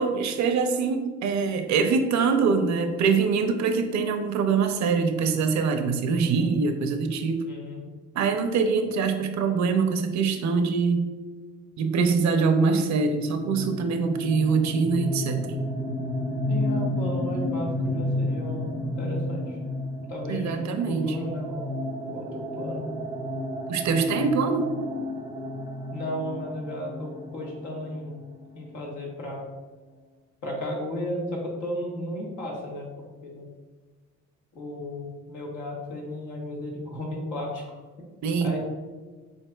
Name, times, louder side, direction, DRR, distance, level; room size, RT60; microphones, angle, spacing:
voice 1, 0.0-7.4 8.1-11.1 11.8-15.7 20.3-21.2 23.7-24.7 38.2-38.6, right 5 dB, 65° right, 7 dB, 0.6 m, -24 dB
voice 2, 7.5-7.8 16.5-19.6 20.1-21.7 22.0-22.9 25.9-28.2 28.5-29.5 30.4-32.9 33.2-33.5 34.5-37.8 38.4-38.6, left 1 dB, 80° left, -2 dB, 1.3 m, -34 dB
sound 1, 13.0-28.6, left 1 dB, 15° right, 0.5 m, -32 dB
7.3 x 2.8 x 2.3 m, 1.3 s
cardioid pair, 90°, 30 cm